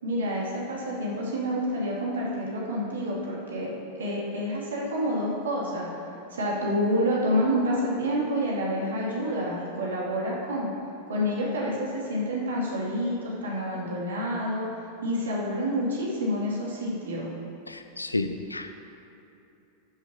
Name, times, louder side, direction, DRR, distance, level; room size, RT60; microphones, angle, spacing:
voice 1, 0.0-5.9 6.3-10.7 11.1-14.7 15.0-17.3, equal, 65° right, -4 dB, 2.8 m, -28 dB
voice 2, 17.7-18.7, left 2 dB, 85° left, 8 dB, 0.6 m, -31 dB
13.0 x 7.4 x 5.0 m, 2.8 s
figure-of-eight pair, 90°, 0 cm